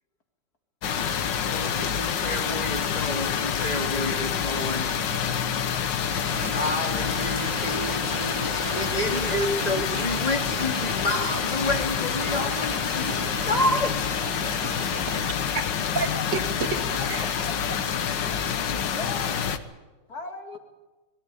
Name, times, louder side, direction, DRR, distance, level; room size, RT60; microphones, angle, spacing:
sound 1, 0.8-19.6, left 7 dB, 85° left, 1.8 m, -27 dB
voice 1, 1.3-4.9 6.5-14.1, left 1 dB, 25° left, 1.9 m, -29 dB
sound 2, 6.1-13.7, equal, 10° right, 6.1 m, -40 dB
sound 3, 6.3-15.3, right 6 dB, 50° right, 1.2 m, -39 dB
voice 2, 15.1-17.3, right 5 dB, 75° right, 2.1 m, -32 dB
voice 3, 15.9-16.3 17.0-17.5 18.9-19.6 20.1-20.6, left 3 dB, 55° left, 2.7 m, -38 dB
21.0 x 14.0 x 9.5 m
omnidirectional pair, 1.9 m